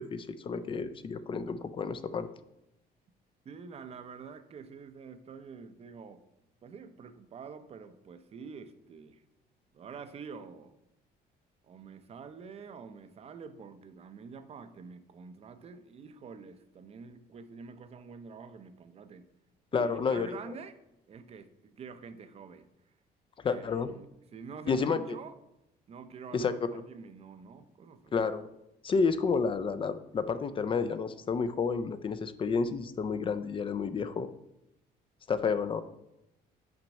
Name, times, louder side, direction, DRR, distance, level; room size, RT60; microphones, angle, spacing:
voice 1, 0.0-2.3 19.7-20.3 23.4-23.9 24.7-25.0 26.3-26.5 28.1-28.5 28.8-34.3 35.3-35.8, left 5 dB, 30° left, 12 dB, 0.4 m, -30 dB
voice 2, 3.4-6.2 6.6-9.2 9.7-10.7 11.6-19.3 19.7-20.7 21.1-22.7 23.4-25.4 25.9-28.2, right 5 dB, 35° right, 10 dB, 0.6 m, -47 dB
6.0 x 4.5 x 5.2 m, 0.87 s
cardioid pair, 110°, 17 cm